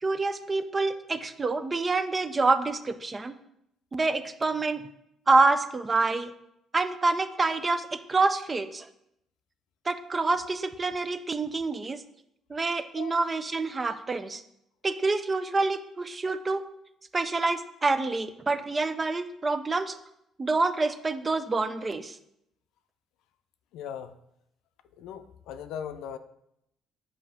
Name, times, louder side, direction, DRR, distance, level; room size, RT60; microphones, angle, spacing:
voice 1, 0.0-3.4 3.9-4.9 5.3-6.3 6.7-8.9 9.9-12.0 12.5-14.4 14.8-16.6 17.1-20.0 20.4-22.2, right 3 dB, 20° right, 11 dB, 0.3 m, -27 dB
voice 2, 23.7-24.1 25.0-26.2, left 8 dB, 85° left, 10 dB, 0.4 m, -38 dB
7.2 x 2.8 x 5.4 m, 0.78 s
cardioid pair, 165°, 0 cm